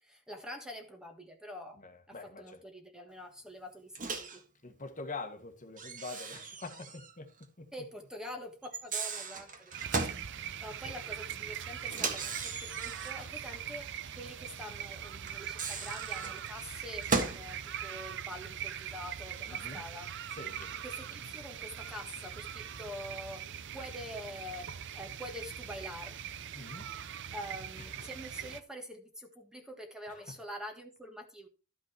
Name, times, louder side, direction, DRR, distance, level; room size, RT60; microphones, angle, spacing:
voice 1, 0.0-1.8 2.1-4.4 7.7-20.1 20.8-26.2 27.3-31.5, equal, 5° right, 1.6 m, -46 dB
voice 2, 1.8-2.6 4.6-7.3 7.6-7.7 10.3-10.6 19.5-19.8 20.3-20.8 26.5-26.9 30.1-30.3, left 3 dB, 40° left, 1.6 m, -45 dB
Microwave oven, 4.0-4.4 5.8-7.1 7.4-7.5 8.6-10.3 11.9-13.3 15.3-17.5, right 4 dB, 40° right, 1.7 m, -36 dB
sound 1, 9.7-28.6, right 9 dB, 60° right, 0.6 m, -42 dB
13.0 x 5.5 x 4.4 m
head